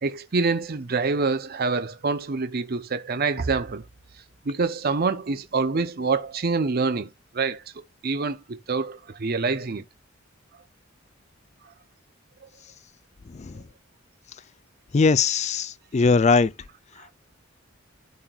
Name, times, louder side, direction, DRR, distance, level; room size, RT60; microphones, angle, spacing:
voice 1, 0.0-3.8 4.5-7.1 7.3-7.6 8.0-9.8, right 4 dB, 50° right, 0.7 m, -26 dB
voice 2, 14.9-16.5, left 4 dB, 35° left, 0.4 m, -20 dB
12.5 x 4.3 x 2.4 m
head